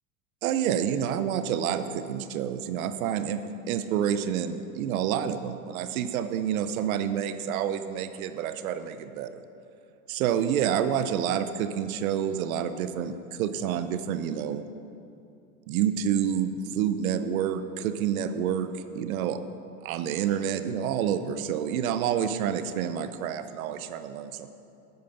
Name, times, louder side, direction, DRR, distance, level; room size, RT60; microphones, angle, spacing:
voice 1, 0.4-9.4 10.1-14.6 15.7-19.4 19.8-24.5, right 9 dB, 75° right, 10 dB, 0.8 m, -28 dB
9.6 x 8.8 x 5.8 m, 2.6 s
supercardioid pair, 140°, 42 cm